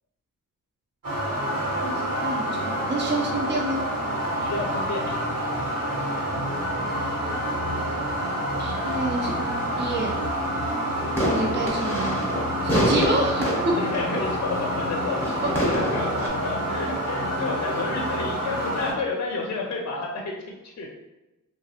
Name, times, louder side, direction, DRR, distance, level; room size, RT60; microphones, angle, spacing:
sound 1, 1.0-18.9, equal, 85° right, 1.3 m, -28 dB
voice 1, 1.8-3.8 8.6-10.2 11.3-12.3 12.6-13.7, right 2 dB, 35° right, -1 dB, 0.5 m, -28 dB
sound 2, 2.5-18.1, left 5 dB, 60° right, 0.8 m, -42 dB
voice 2, 4.4-5.4 13.8-20.9, left 3 dB, 50° left, 0 dB, 0.6 m, -31 dB
sound 3, 10.9-16.3, equal, 5° left, 0.8 m, -27 dB
2.9 x 2.4 x 2.8 m, 1.0 s
wide cardioid pair, 105°, 33 cm